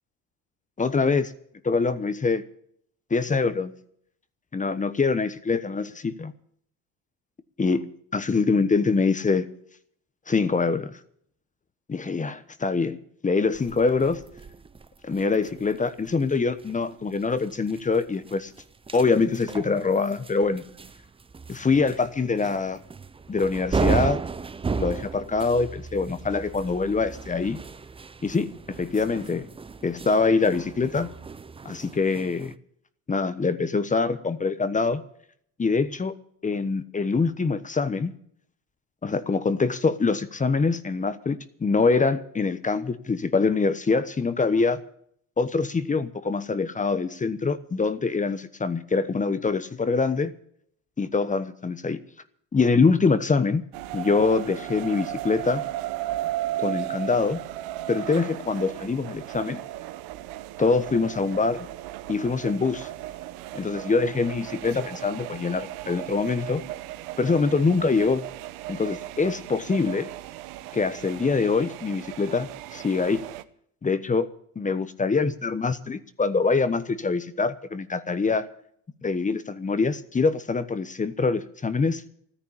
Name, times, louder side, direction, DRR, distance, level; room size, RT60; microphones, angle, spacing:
voice 1, 0.8-1.3 1.7-2.4 3.1-3.7 4.5-6.3 7.6-9.5 10.3-11.0 11.9-13.0 13.2-14.2 15.0-18.5 18.9-20.6 21.5-22.8 23.3-24.2 24.8-27.6 28.2-29.5 29.8-31.1 31.6-32.5 33.1-35.0 35.6-36.1 36.4-38.1 39.0-44.8 45.4-50.3 51.0-52.0 52.5-53.6 53.9-55.6 56.6-57.4 57.9-59.6 60.6-61.7 62.1-62.9 63.5-66.6 67.2-68.3 68.7-70.1 70.7-73.2 73.8-74.3 74.6-78.5 79.0-82.0, left 4 dB, 20° left, 13 dB, 1.1 m, -24 dB
sound 1, 13.5-32.6, right 4 dB, 15° right, 0.6 m, -35 dB
sound 2, 53.7-73.4, right 15 dB, 80° right, 1.1 m, -36 dB
14.0 x 10.0 x 8.7 m, 0.65 s
supercardioid pair, 100°, 36 cm